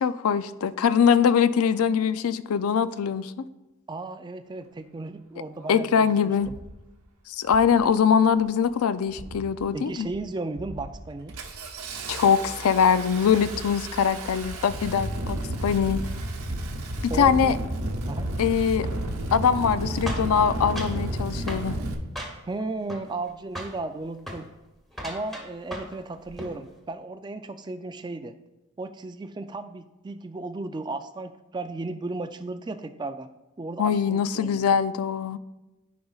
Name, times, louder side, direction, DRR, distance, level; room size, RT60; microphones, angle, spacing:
voice 1, 0.0-3.4 5.7-6.5 7.3-10.1 12.1-16.0 17.2-17.6 18.4-18.9 19.3-21.8 33.8-35.4, left 7 dB, 75° left, 14 dB, 0.4 m, -22 dB
voice 2, 3.9-6.6 9.7-11.4 17.1-17.6 18.1-18.3 22.5-24.5 25.0-28.4 28.8-33.3 33.6-34.8, right 2 dB, 20° right, 9 dB, 0.3 m, -35 dB
Engine starting, 5.6-5.7 6.4-6.7 7.4-7.8 8.1-8.7 9.1-9.6 10.0-10.2 10.6-21.9, right 1 dB, 85° right, 1.1 m, -32 dB
sound 1, 20.1-21.0 21.5-21.7 22.2-22.6 22.9-23.3 23.6-23.8 24.2-24.4 24.9-26.0 26.3-26.6, equal, ahead, 1.1 m, -36 dB
14.0 x 5.1 x 2.4 m, 1.0 s
head